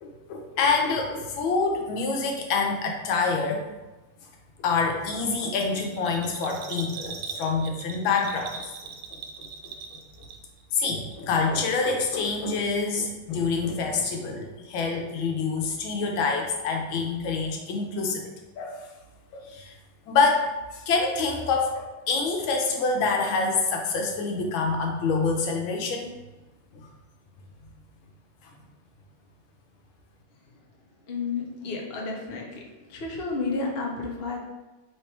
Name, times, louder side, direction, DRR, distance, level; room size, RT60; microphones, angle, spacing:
voice 1, 0.0-3.7 4.6-8.8 9.4-9.7 10.7-18.9 19.3-19.7 20.1-26.1 26.7-26.9 28.4-28.5, left 4 dB, 85° left, 2 dB, 1.5 m, -26 dB
Bell, 5.5-10.6 10.9-11.7 12.0-12.1, right 5 dB, 90° right, 1.4 m, -40 dB
voice 2, 31.1-32.6 32.9-34.4, left 3 dB, 55° left, -1 dB, 0.6 m, -31 dB
3.5 x 3.3 x 4.4 m, 1.1 s
omnidirectional pair, 2.2 m